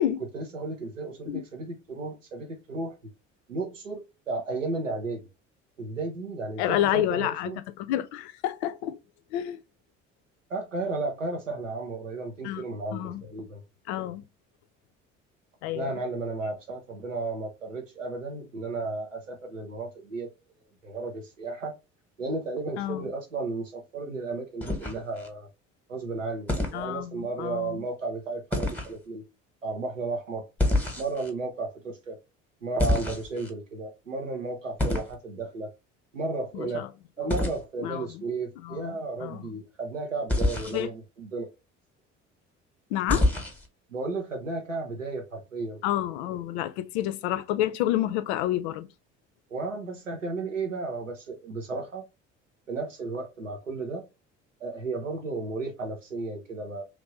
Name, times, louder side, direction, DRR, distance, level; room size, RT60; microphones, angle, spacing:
voice 1, 0.3-2.9 3.5-5.2 5.8-7.6 10.5-13.6 15.7-20.3 20.8-21.7 22.2-25.5 25.9-29.2 29.6-30.4 31.0-32.2 32.6-35.7 36.1-36.8 37.2-41.5 43.9-45.8 49.5-52.0 52.7-54.0 54.6-56.8, right 3 dB, 90° right, 0.6 m, -33 dB
voice 2, 6.6-7.5 7.8-9.0 9.3-9.6 12.4-12.6 12.9-13.2 13.9-14.2 15.6-16.0 22.8-23.1 26.7-27.8 36.5-36.9 37.8-38.1 38.6-39.0 39.2-39.4 40.7-40.9 42.9-43.3 45.8-48.9, left 12 dB, 60° left, 0.5 m, -29 dB
sound 1, 24.6-25.3 26.5-26.8 28.5-28.9 30.6-31.3 32.8-33.5 34.8-35.1 37.3-37.6 40.3-40.8 43.1-43.7, left 1 dB, 5° left, 1.0 m, -26 dB
3.0 x 2.5 x 2.9 m
figure-of-eight pair, 55°, 37 cm